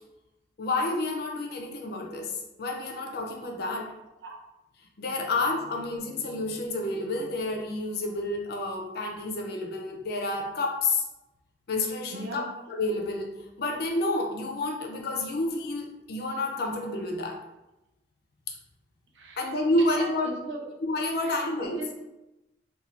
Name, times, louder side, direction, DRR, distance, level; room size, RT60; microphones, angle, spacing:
voice 1, 0.6-3.9 5.0-11.0 11.7-17.4 19.4-20.3 20.8-21.8, left 2 dB, 55° left, 2 dB, 0.5 m, -29 dB
voice 2, 12.1-12.6 19.1-19.5 19.8-20.7 21.2-22.0, right 1 dB, 80° right, 0 dB, 0.6 m, -39 dB
2.5 x 2.2 x 3.2 m, 0.97 s
head